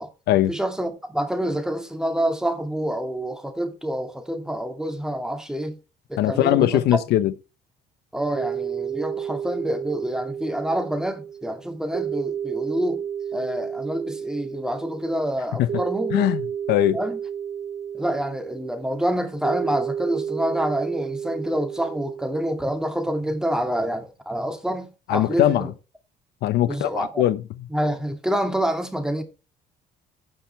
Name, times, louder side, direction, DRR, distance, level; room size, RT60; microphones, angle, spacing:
voice 1, 0.5-5.8 6.1-6.7 8.1-13.0 13.3-16.2 16.9-17.2 17.9-25.7 26.7-27.2 27.7-29.2, right 1 dB, 5° right, 2.2 m, -27 dB
voice 2, 6.2-7.3 15.6-15.7 16.1-16.4 16.7-17.0 25.1-25.7 26.4-27.4, left 13 dB, 80° left, 0.8 m, -20 dB
sound 1, 8.4-22.6, right 8 dB, 45° right, 0.9 m, -32 dB
16.0 x 6.0 x 3.2 m
cardioid pair, 110°, 17 cm